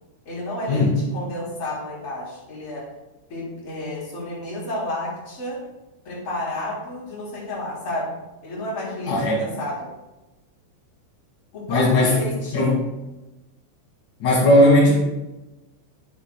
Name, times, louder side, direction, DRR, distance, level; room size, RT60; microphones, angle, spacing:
voice 1, 0.3-2.8 3.3-5.6 6.1-8.1 8.4-9.9 11.5-12.7 14.4-14.6, left 1 dB, 35° left, -7 dB, 3.5 m, -31 dB
voice 2, 9.1-9.4 11.7-12.2 12.5-12.8 14.2-14.9, left 1 dB, 55° left, -3 dB, 2.3 m, -17 dB
12.0 x 8.1 x 2.3 m, 1.0 s
omnidirectional pair, 5.5 m